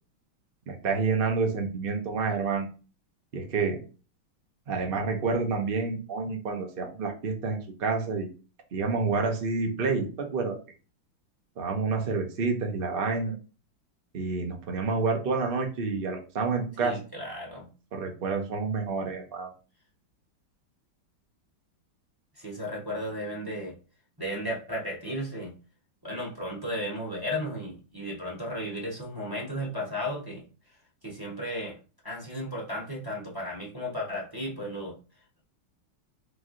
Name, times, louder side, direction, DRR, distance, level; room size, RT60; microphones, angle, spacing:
voice 1, 0.7-2.7 3.3-3.8 4.7-8.3 8.7-10.6 11.6-13.3 14.1-17.0 17.9-19.5, right 4 dB, 70° right, 2 dB, 0.5 m, -28 dB
voice 2, 16.8-17.7 22.4-23.7 24.2-25.5 26.0-30.4 31.0-31.8 32.0-34.9, equal, 15° right, -4 dB, 0.8 m, -34 dB
3.5 x 3.1 x 3.7 m, 0.34 s
omnidirectional pair, 2.2 m